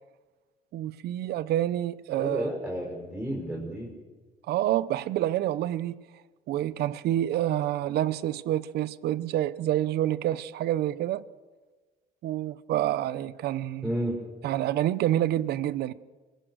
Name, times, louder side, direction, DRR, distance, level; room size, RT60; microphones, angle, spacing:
voice 1, 0.7-2.5 4.5-6.0 6.5-11.2 12.2-13.9 14.4-15.9, right 13 dB, 75° right, 0.9 m, -28 dB
voice 2, 2.1-3.9 13.8-14.2, equal, 5° right, 5.2 m, -31 dB
25.0 x 21.5 x 6.4 m
cardioid pair, 110°, 17 cm